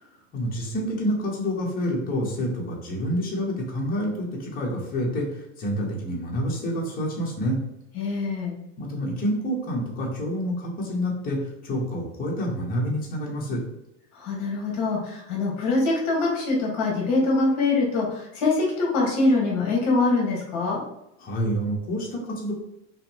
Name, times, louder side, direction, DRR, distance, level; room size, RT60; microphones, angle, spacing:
voice 1, 0.3-7.6 8.8-13.6 21.2-22.5, equal, 25° left, -3 dB, 1.1 m, -28 dB
voice 2, 7.9-8.5 14.1-20.8, left 3 dB, 50° left, -2 dB, 1.5 m, -24 dB
5.7 x 2.2 x 3.5 m, 0.83 s
supercardioid pair, 160°, 38 cm